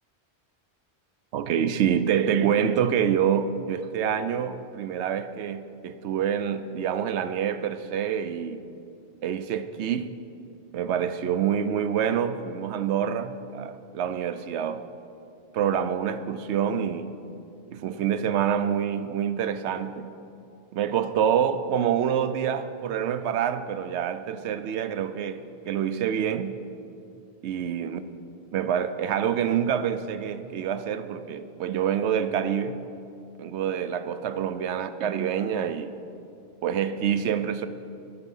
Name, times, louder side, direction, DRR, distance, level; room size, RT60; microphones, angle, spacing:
voice 1, 1.3-8.6 9.2-10.1 10.7-14.8 15.5-17.1 17.7-20.1 20.7-26.6 27.4-28.0 28.5-32.8 33.4-35.9 36.6-37.7, right 8 dB, 80° right, 11 dB, 0.9 m, -26 dB
10.5 x 9.7 x 5.4 m, 2.6 s
omnidirectional pair, 1.2 m